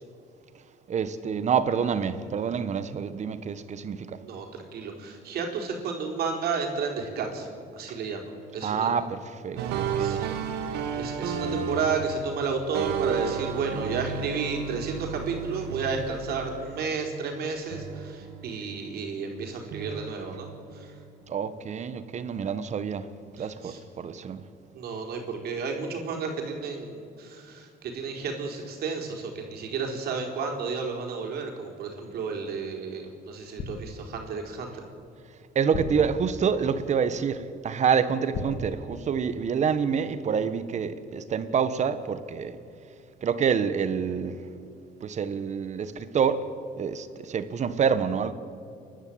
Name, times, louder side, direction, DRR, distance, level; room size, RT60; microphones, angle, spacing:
voice 1, 0.9-4.2 7.9-8.0 8.6-10.4 21.3-23.1 23.4-24.4 35.5-42.6 43.2-44.3 45.0-46.4 46.8-48.3, right 7 dB, 45° right, 1.4 m, -27 dB
voice 2, 4.2-7.5 7.7-8.2 8.5-8.9 9.6-9.7 10.0-10.4 10.9-20.9 23.4-23.8 24.7-34.8, right 5 dB, 70° right, 4.3 m, -32 dB
sound 1, 9.6-17.5 17.7-19.3 19.7-21.3, right 7 dB, 85° right, 1.8 m, -33 dB
sound 2, 33.6-34.3 35.7-36.7 38.3-39.4 39.7-40.0, left 4 dB, 55° left, 2.0 m, -37 dB
30.0 x 12.0 x 8.7 m
cardioid pair, 110°, 17 cm